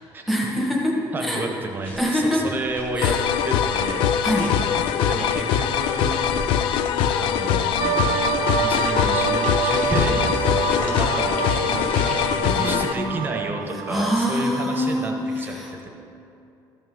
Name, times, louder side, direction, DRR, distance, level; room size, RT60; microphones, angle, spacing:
voice 1, 0.3-1.5 2.0-2.5 3.0-3.2 4.2-4.5 12.4-13.3 13.9-15.7, equal, ahead, -3 dB, 1.3 m, -25 dB
voice 2, 1.1-3.1 3.4-4.1 5.1-6.1 7.2-12.2 12.6-15.9, right 2 dB, 25° right, 2 dB, 0.9 m, -31 dB
sound 1, 1.8-7.6 8.4-12.4, equal, 15° left, 1.5 m, -35 dB
sound 2, 3.0-12.9, left 9 dB, 85° left, 0.4 m, -22 dB
sound 3, 7.8-14.2, right 11 dB, 80° right, 0.6 m, -27 dB
13.5 x 6.2 x 3.7 m, 2.8 s
cardioid pair, 155°, 9 cm